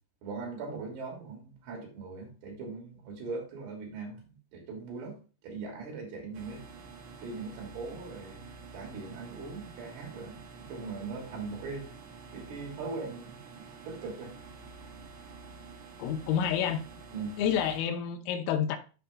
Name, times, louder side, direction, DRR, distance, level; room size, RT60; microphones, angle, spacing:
voice 1, 0.2-5.2 5.4-6.6 7.2-8.4 8.7-12.0 12.3-14.4 17.1-17.4, right 4 dB, 55° right, -1 dB, 4.5 m, -40 dB
sound 1, 6.3-17.8, right 4 dB, 80° right, 4.0 m, -49 dB
voice 2, 16.0-16.8 17.4-18.8, left 8 dB, 85° left, 6 dB, 3.6 m, -29 dB
14.5 x 5.2 x 2.4 m, 0.34 s
omnidirectional pair, 5.8 m